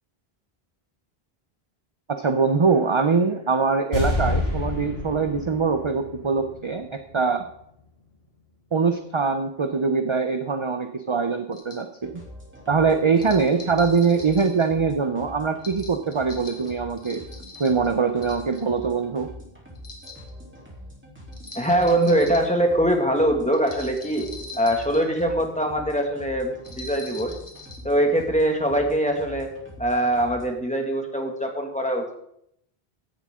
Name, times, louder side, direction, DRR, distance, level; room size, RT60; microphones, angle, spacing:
voice 1, 2.1-7.5 8.7-12.2 12.7-17.2 17.6-19.3, right 5 dB, 35° right, 7 dB, 0.7 m, -23 dB
sound 1, 3.9-7.1 7.4-7.5, left 2 dB, 80° left, 5.1 m, -28 dB
sound 2, 11.5-11.8 13.2-14.7 15.6-17.9 18.2-18.8 19.8-20.3 21.3-22.5 23.5-25.2 26.6-27.8, left 3 dB, 30° left, 2.2 m, -42 dB
sound 3, 12.0-30.5, equal, 10° right, 3.4 m, -44 dB
voice 2, 21.6-24.3 24.6-27.3 27.8-29.5 29.8-32.1, right 1 dB, 5° left, 2 dB, 2.0 m, -22 dB
16.0 x 11.5 x 3.7 m, 0.74 s
omnidirectional pair, 1.0 m